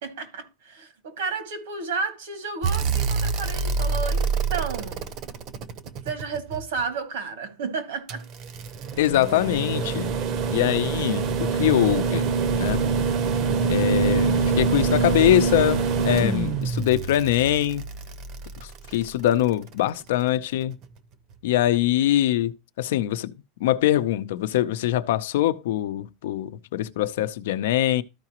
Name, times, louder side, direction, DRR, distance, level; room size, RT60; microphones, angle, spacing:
voice 1, 0.0-5.0 6.0-8.2 18.9-19.0, right 4 dB, 85° right, 2.2 m, -32 dB
sound 1, 2.6-6.8 8.1-19.3 20.8-20.9, right 5 dB, 40° right, 0.7 m, -25 dB
voice 2, 9.0-10.1 10.5-12.3 12.5-12.8 13.7-17.9 18.6-20.8 21.4-23.3 23.6-28.0, left 13 dB, 80° left, 0.6 m, -23 dB
13.5 x 4.9 x 3.0 m
supercardioid pair, 160°, 0 cm